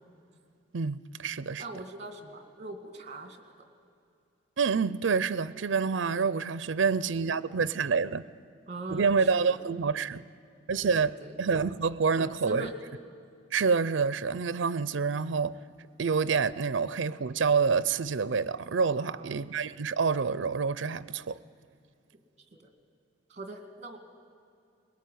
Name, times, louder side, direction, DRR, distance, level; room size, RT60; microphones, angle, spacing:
voice 1, 0.7-1.6 4.6-8.2 8.9-10.2 10.7-11.1 11.4-12.7 13.5-15.6 16.0-21.4, right 5 dB, 75° right, 0.5 m, -27 dB
voice 2, 1.6-3.4 8.7-9.2 9.5-9.6 10.8-11.3 12.2-12.7 19.0-19.3 22.6-22.7 23.3-24.0, right 2 dB, 35° right, 2.2 m, -41 dB
21.0 x 18.5 x 9.3 m
head